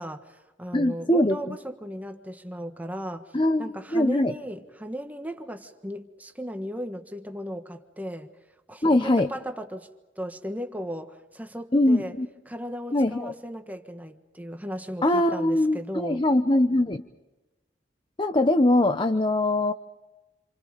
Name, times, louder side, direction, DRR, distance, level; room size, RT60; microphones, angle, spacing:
voice 1, 0.0-3.3 3.6-8.3 8.7-9.9 10.2-12.1 12.5-16.2, equal, 10° right, 5 dB, 1.5 m, -36 dB
voice 2, 0.7-1.6 3.3-4.3 8.8-9.3 11.7-12.3 12.9-13.3 15.0-17.0 18.2-19.7, left 1 dB, 25° left, 9 dB, 0.9 m, -22 dB
28.5 x 28.0 x 5.2 m, 1.1 s
head